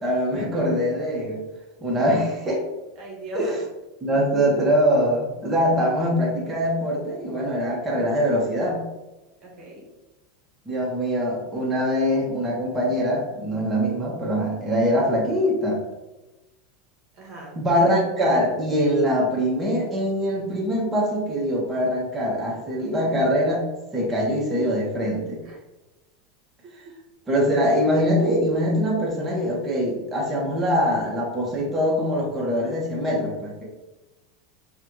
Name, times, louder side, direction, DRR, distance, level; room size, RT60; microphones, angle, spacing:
voice 1, 0.0-1.4 1.8-2.6 3.3-3.6 4.0-8.8 10.7-15.8 17.5-23.7 23.9-25.4 27.3-33.6, equal, 20° right, -3 dB, 1.3 m, -23 dB
voice 2, 3.0-3.5 9.4-9.8 17.1-17.5 25.4-25.6, right 2 dB, 55° right, -2 dB, 1.2 m, -38 dB
4.8 x 2.5 x 3.0 m, 1.1 s
hypercardioid pair, 95°, 0 cm